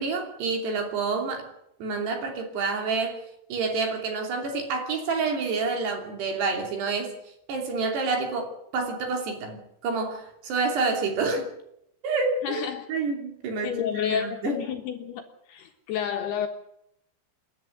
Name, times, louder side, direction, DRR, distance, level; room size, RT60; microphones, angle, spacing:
voice 1, 0.0-1.5 1.8-3.2 3.5-7.1 7.5-11.5 12.0-13.8 14.1-14.6, right 4 dB, 60° right, 4.7 m, -28 dB
voice 2, 12.4-12.8 13.6-15.2 15.5-16.5, left 8 dB, 65° left, 2.9 m, -30 dB
28.0 x 11.0 x 9.6 m
omnidirectional pair, 5.8 m